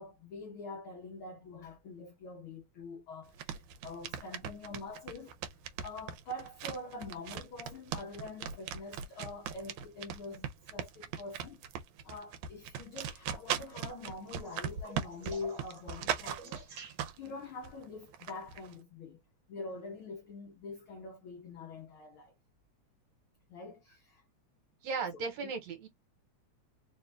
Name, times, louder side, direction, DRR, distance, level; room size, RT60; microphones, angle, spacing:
voice 1, 0.0-11.6 12.0-19.2 19.5-22.3 23.5-24.2 25.1-25.5, left 3 dB, 85° left, 1.1 m, -45 dB
sound 1, 3.2-17.3 17.6-18.8, right 8 dB, 90° right, 2.1 m, -39 dB
sound 2, 13.7-17.4 19.6-20.0 21.7-21.8, right 4 dB, 50° right, 1.4 m, -52 dB
voice 2, 24.8-25.9, right 5 dB, 70° right, 2.3 m, -36 dB
4.6 x 2.4 x 3.3 m
omnidirectional pair, 3.3 m